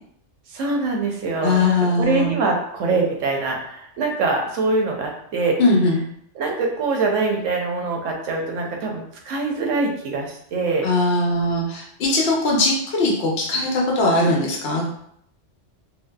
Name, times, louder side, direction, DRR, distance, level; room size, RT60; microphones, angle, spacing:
voice 1, 0.5-5.6 6.4-10.9 14.1-14.3, right 3 dB, 90° right, 1 dB, 0.9 m, -24 dB
voice 2, 1.4-2.3 5.6-6.0 10.8-14.9, left 2 dB, 60° left, -1 dB, 0.8 m, -20 dB
2.6 x 2.2 x 2.2 m, 0.70 s
omnidirectional pair, 1.3 m